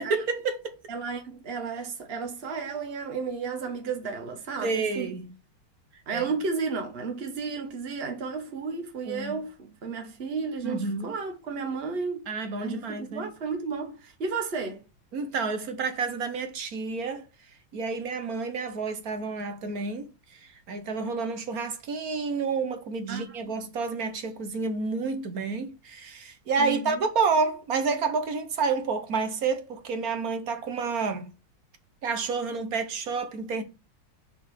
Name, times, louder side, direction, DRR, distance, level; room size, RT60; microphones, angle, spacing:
voice 1, 0.0-0.8 4.6-5.3 6.1-6.3 9.1-9.4 10.6-11.1 12.3-13.3 15.1-17.2 17.7-31.3 32.0-33.6, right 4 dB, 50° right, 1.4 m, -29 dB
voice 2, 0.9-5.1 6.1-12.2 12.6-14.8 23.1-23.2 26.6-27.0, right 5 dB, 35° right, 1.5 m, -33 dB
6.1 x 4.0 x 6.3 m
omnidirectional pair, 2.2 m